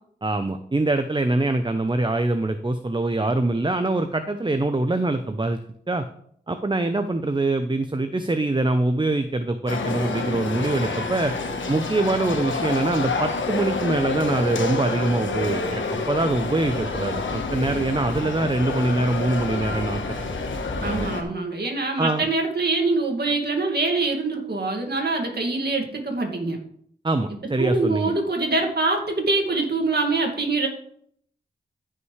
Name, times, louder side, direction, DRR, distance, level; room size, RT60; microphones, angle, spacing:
voice 1, 0.2-5.6 5.9-6.0 6.5-11.3 11.7-20.2 20.8-21.1 22.0-22.3 27.0-28.1, right 2 dB, 25° right, 9 dB, 0.8 m, -24 dB
sound 1, 9.7-21.2, left 3 dB, 75° left, 1.3 m, -28 dB
voice 2, 20.8-26.6 27.6-30.7, right 3 dB, 55° right, 2 dB, 2.3 m, -24 dB
14.0 x 5.6 x 3.3 m, 0.65 s
cardioid pair, 40°, 20 cm